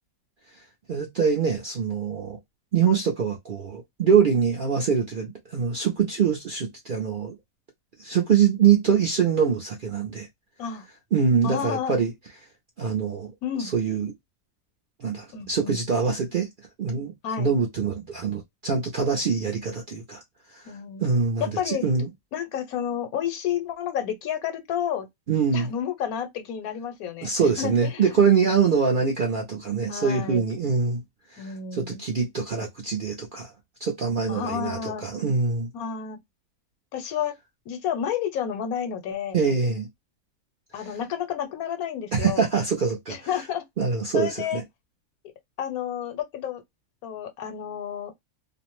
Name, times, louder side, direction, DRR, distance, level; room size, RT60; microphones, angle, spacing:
voice 1, 0.9-2.4 2.7-7.3 8.0-10.3 11.1-12.1 12.8-13.3 13.6-14.1 15.0-16.5 16.8-17.1 17.4-20.2 20.5-20.6 21.0-22.1 25.3-25.7 27.2-31.0 31.3-33.5 33.8-35.7 39.3-39.9 42.1-43.3 43.8-44.6, right 6 dB, 60° right, 0.5 m, -24 dB
voice 2, 11.4-12.0 13.4-13.7 15.3-15.8 17.2-17.5 20.7-21.0 21.4-21.9 22.3-25.1 25.5-28.2 28.5-29.0 29.9-30.5 31.4-32.0 34.3-35.0 35.7-36.2 36.9-37.3 37.7-39.6 40.7-42.5 43.1-43.6 44.1-44.6 45.6-46.6 47.0-48.1, left 8 dB, 80° left, 1.1 m, -31 dB
2.5 x 2.0 x 2.9 m
omnidirectional pair, 1.5 m